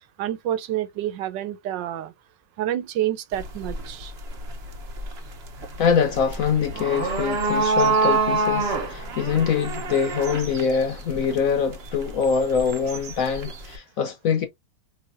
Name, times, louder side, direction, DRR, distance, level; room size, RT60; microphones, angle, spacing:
voice 1, 0.2-2.1 2.6-4.1, right 12 dB, 80° right, 1.4 m, -28 dB
sound 1, 3.3-13.8, right 3 dB, 45° right, 0.9 m, -28 dB
voice 2, 5.8-14.5, left 6 dB, 65° left, 0.9 m, -24 dB
4.8 x 3.2 x 2.5 m
omnidirectional pair, 2.0 m